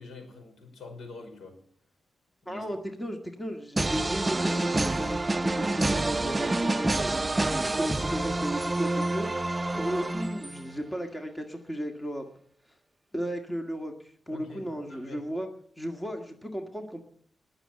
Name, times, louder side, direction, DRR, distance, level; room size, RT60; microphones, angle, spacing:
voice 1, 0.0-1.6 2.4-2.6 14.3-15.2, left 3 dB, 80° left, 5 dB, 5.3 m, -45 dB
voice 2, 2.5-9.3 9.7-12.3 13.1-15.5 15.8-17.1, equal, 15° left, 4 dB, 1.9 m, -35 dB
sound 1, 3.8-10.7, right 2 dB, 20° right, 0.6 m, -28 dB
20.5 x 7.1 x 8.9 m, 0.64 s
wide cardioid pair, 120°, 0 cm